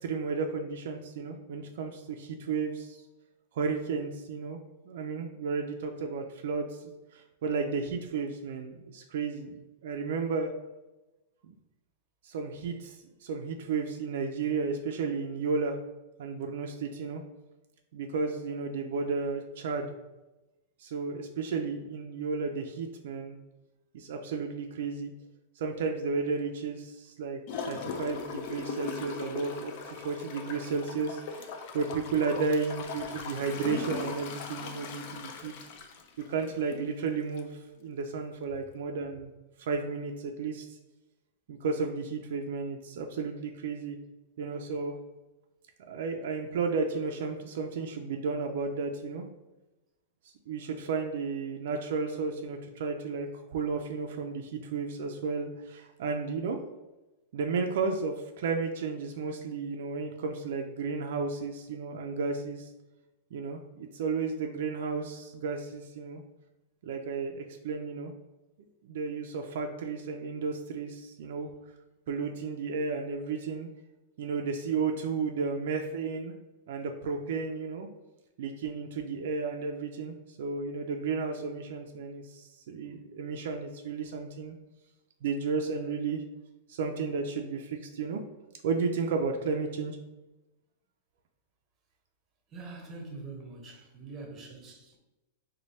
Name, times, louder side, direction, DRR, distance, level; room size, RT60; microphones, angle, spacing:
voice 1, 0.0-3.0 3.5-4.6 4.9-10.5 11.4-11.6 12.2-15.8 16.2-17.2 17.9-19.9 20.8-23.4 23.9-25.1 25.6-31.5 31.7-35.5 36.3-39.3 39.6-40.7 41.5-44.0 44.4-45.0 45.9-49.2 50.5-56.6 57.3-62.7 63.3-66.2 66.8-68.1 68.8-71.5 72.1-73.7 74.2-76.3 76.7-77.9 78.4-84.6 85.2-86.2 86.7-88.2 88.6-90.0, right 4 dB, 65° right, 3 dB, 0.4 m, -33 dB
Gurgling / Toilet flush, 27.5-36.9 37.4-37.5, left 5 dB, 45° left, 0.4 m, -39 dB
voice 2, 92.5-95.0, right 3 dB, 20° right, 2 dB, 0.7 m, -44 dB
3.2 x 2.2 x 4.1 m, 1.0 s
supercardioid pair, 155°, 0 cm